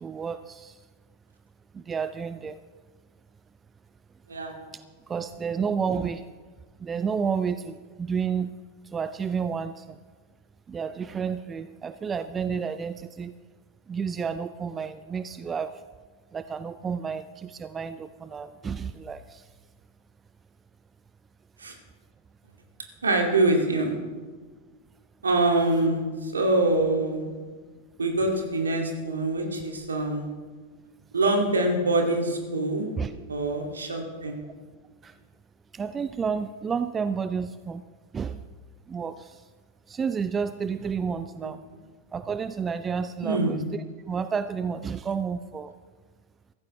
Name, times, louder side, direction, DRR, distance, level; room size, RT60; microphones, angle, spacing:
voice 1, 0.0-0.8 1.7-2.6 4.7-6.2 6.8-8.5 8.9-10.0 10.7-13.3 13.9-15.8 16.3-19.5 33.0-33.1 35.0-35.1 35.7-37.8 38.1-38.4 38.9-39.4 39.9-41.6 42.1-45.7, right 6 dB, 20° right, 13 dB, 0.4 m, -31 dB
voice 2, 23.0-24.0 25.2-27.3 28.0-30.3 31.1-32.9 33.3-34.4 41.4-41.5 43.2-43.6, right 2 dB, 75° right, 2 dB, 2.3 m, -24 dB
16.0 x 14.5 x 3.2 m, 1.4 s
figure-of-eight pair, 90°, 0 cm